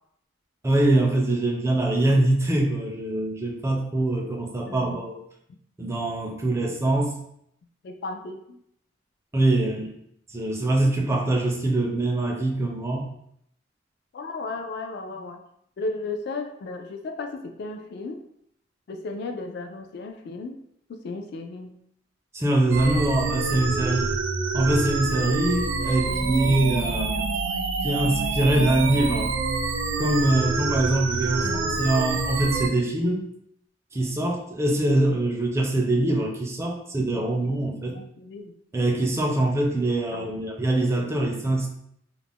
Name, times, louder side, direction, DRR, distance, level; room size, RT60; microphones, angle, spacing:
voice 1, 0.6-5.2 5.8-7.2 9.3-9.9 10.3-13.1 22.3-24.1 24.5-27.3 27.8-29.3 30.0-33.3 33.9-38.0 38.7-41.7, right 1 dB, 15° right, 0 dB, 0.4 m, -23 dB
voice 2, 4.7-5.1 7.8-8.6 14.1-15.4 15.8-18.2 18.9-20.6 20.9-21.8 26.1-26.8 31.4-31.9 37.1-38.5 40.1-40.4, left 3 dB, 60° left, 5 dB, 0.3 m, -35 dB
sound 1, 22.7-32.7, right 4 dB, 85° right, 0.4 m, -27 dB
2.4 x 2.0 x 3.5 m, 0.73 s
head